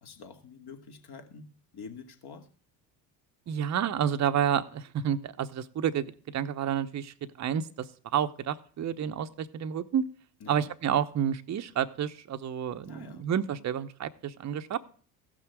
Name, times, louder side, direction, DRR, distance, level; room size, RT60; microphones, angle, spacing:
voice 1, 0.0-2.5 10.4-10.7 12.8-13.3, left 5 dB, 50° left, 4 dB, 2.5 m, -47 dB
voice 2, 3.5-10.1 10.5-14.8, right 9 dB, 35° right, 9 dB, 0.9 m, -30 dB
15.5 x 6.1 x 4.7 m, 0.44 s
hypercardioid pair, 70°, 49 cm